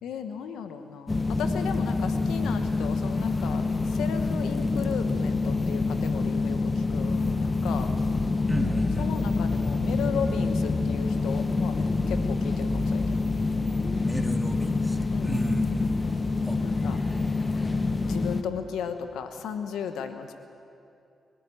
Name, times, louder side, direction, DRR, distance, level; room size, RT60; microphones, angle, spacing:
voice 1, 0.0-7.9 9.0-13.0 15.1-15.4 16.6-17.0 18.1-20.3, left 7 dB, 80° left, 8 dB, 1.1 m, -35 dB
sound 1, 1.1-18.4, left 3 dB, 30° left, 1.4 m, -26 dB
voice 2, 8.5-9.1 14.0-15.9 16.5-16.6, equal, 10° left, 3 dB, 2.6 m, -32 dB
23.0 x 13.0 x 9.8 m, 2.6 s
supercardioid pair, 50°, 0 cm